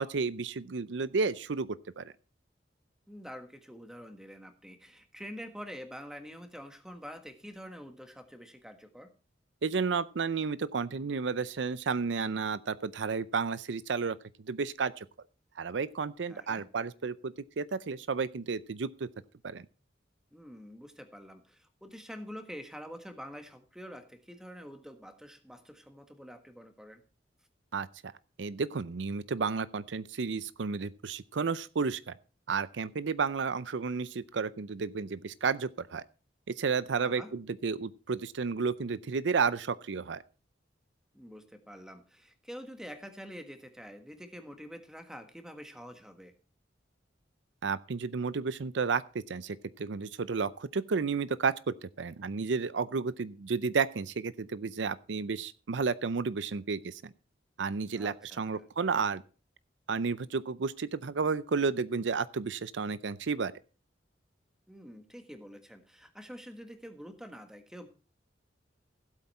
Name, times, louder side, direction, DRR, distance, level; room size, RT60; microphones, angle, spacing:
voice 1, 0.0-1.7 2.0-2.1 9.6-15.1 15.6-19.1 19.4-19.6 27.7-28.1 28.4-32.1 32.5-36.0 36.6-40.2 47.6-57.1 57.6-59.2 59.9-63.5, right 5 dB, 75° right, 0.5 m, -32 dB
voice 2, 3.1-9.1 16.3-16.7 20.3-27.0 37.0-37.3 41.1-46.3 57.9-58.6 64.7-67.9, equal, 5° right, 1.5 m, -46 dB
15.5 x 8.3 x 4.3 m
head